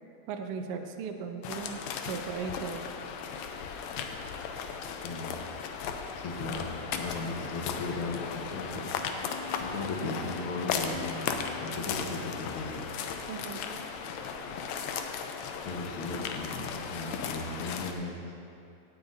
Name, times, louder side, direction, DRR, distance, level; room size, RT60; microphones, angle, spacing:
voice 1, 0.3-2.8 13.3-13.8, right 6 dB, 90° right, 5 dB, 1.3 m, -37 dB
sound 1, 1.4-17.9, left 6 dB, 80° left, 1.8 m, -36 dB
voice 2, 4.9-5.3 6.1-8.9 9.6-12.8 15.6-18.3, left 3 dB, 55° left, 0 dB, 1.7 m, -37 dB
sound 2, 8.7-17.2, left 5 dB, 15° left, 1.6 m, -48 dB
17.0 x 9.2 x 2.7 m, 2.6 s
omnidirectional pair, 3.4 m